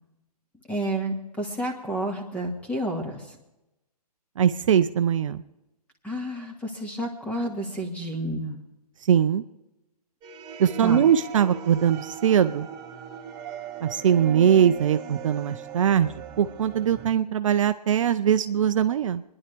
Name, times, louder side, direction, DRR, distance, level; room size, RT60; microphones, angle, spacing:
voice 1, 0.7-3.2 6.0-8.6 10.8-11.0, right 1 dB, 5° left, 1 dB, 1.9 m, -30 dB
voice 2, 4.4-5.4 9.0-9.4 10.6-12.7 13.8-19.2, right 9 dB, 50° right, 10 dB, 0.5 m, -21 dB
sound 1, 10.2-17.1, right 8 dB, 20° right, 0.8 m, -39 dB
24.5 x 10.5 x 3.4 m, 0.95 s
figure-of-eight pair, 130°, 20 cm